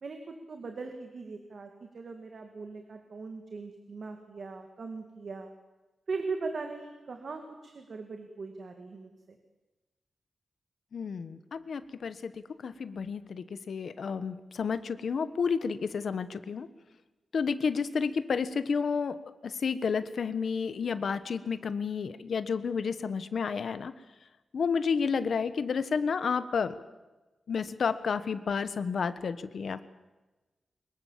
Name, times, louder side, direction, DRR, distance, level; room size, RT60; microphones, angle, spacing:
voice 1, 0.0-5.5 6.1-9.4, right 4 dB, 50° right, 5 dB, 2.1 m, -40 dB
voice 2, 10.9-12.3 12.6-16.7 17.3-19.1 19.4-23.9 24.5-26.7 27.5-29.9, left 5 dB, 65° left, 12 dB, 1.2 m, -31 dB
23.5 x 21.5 x 7.5 m, 1.1 s
wide cardioid pair, 165°, 0 cm